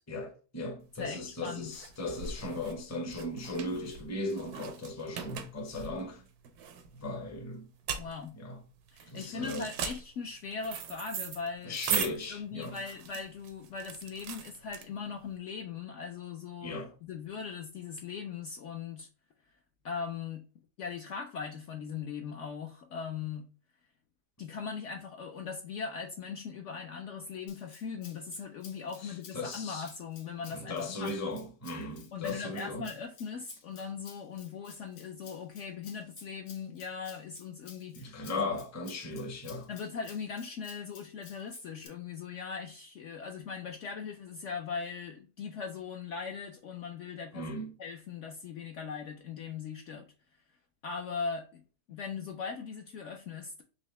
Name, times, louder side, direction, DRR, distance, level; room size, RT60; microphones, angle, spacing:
voice 1, 0.1-6.3 6.9-7.7 8.4-8.6 9.1-9.7 11.6-12.8 16.6-16.9 29.0-29.9 30.5-32.9 37.9-39.7 47.3-47.7, left 2 dB, 20° left, 0.5 m, -37 dB
sound 1, 0.9-15.3, right 7 dB, 90° right, 1.2 m, -39 dB
voice 2, 1.0-1.7 8.0-8.4 8.9-11.8 12.3-16.8 17.1-19.1 19.8-20.5 20.8-23.5 24.4-31.2 32.1-38.4 39.7-47.5 47.8-50.1 50.8-51.6 51.9-53.6, left 5 dB, 65° left, 0.7 m, -39 dB
Rattle (instrument), 27.5-41.9, left 7 dB, 90° left, 1.3 m, -55 dB
4.2 x 2.8 x 3.1 m
omnidirectional pair, 1.6 m